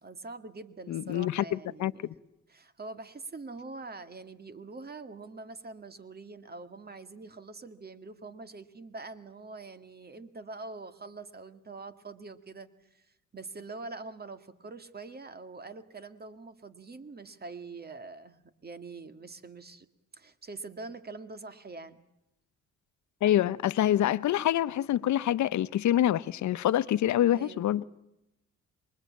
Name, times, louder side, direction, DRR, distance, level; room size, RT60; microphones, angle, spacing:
voice 1, 0.0-2.1 2.5-13.1 13.3-19.9 20.1-22.0 27.3-27.7, right 3 dB, 30° right, 2.0 m, -44 dB
voice 2, 0.9-2.1 23.2-27.8, left 12 dB, 70° left, 1.0 m, -26 dB
27.5 x 23.0 x 8.7 m
cardioid pair, 90°, 30 cm